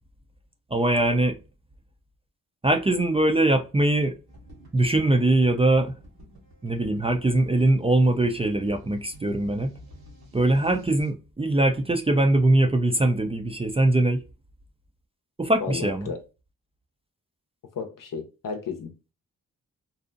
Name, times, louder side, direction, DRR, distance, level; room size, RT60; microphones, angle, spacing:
voice 1, 0.7-1.4 2.6-4.2 4.7-5.9 6.6-9.8 10.3-14.2 15.4-16.1, right 1 dB, 15° right, 0.4 m, -22 dB
sound 1, 4.3-11.1, equal, 75° right, 1.1 m, -48 dB
voice 2, 15.6-16.2 17.7-19.1, left 5 dB, 60° left, 0.7 m, -34 dB
2.6 x 2.0 x 2.5 m
supercardioid pair, 40°, 37 cm